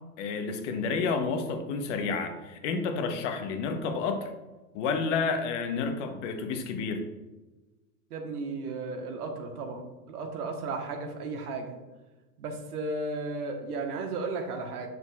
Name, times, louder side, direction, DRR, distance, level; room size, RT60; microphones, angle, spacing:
voice 1, 0.2-4.3 4.7-7.0, left 4 dB, 50° left, 6 dB, 1.0 m, -30 dB
voice 2, 8.1-11.8 12.4-14.9, right 3 dB, 70° right, 4 dB, 1.3 m, -34 dB
7.1 x 6.4 x 2.4 m, 1.1 s
hypercardioid pair, 120°, 47 cm